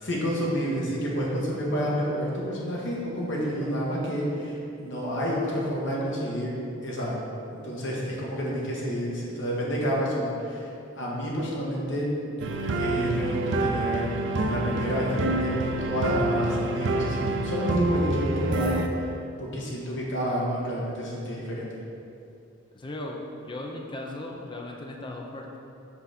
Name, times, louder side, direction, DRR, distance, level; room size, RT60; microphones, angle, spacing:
voice 1, 0.0-6.5 6.8-10.7 11.0-12.1 12.7-14.1 14.4-15.5 15.8-21.8, equal, 65° left, -4 dB, 1.4 m, -29 dB
sound 1, 12.4-18.9, right 2 dB, 65° right, 0.5 m, -27 dB
voice 2, 22.7-23.2 23.5-25.6, left 1 dB, 25° left, 0 dB, 0.5 m, -37 dB
6.0 x 3.9 x 5.8 m, 2.6 s
head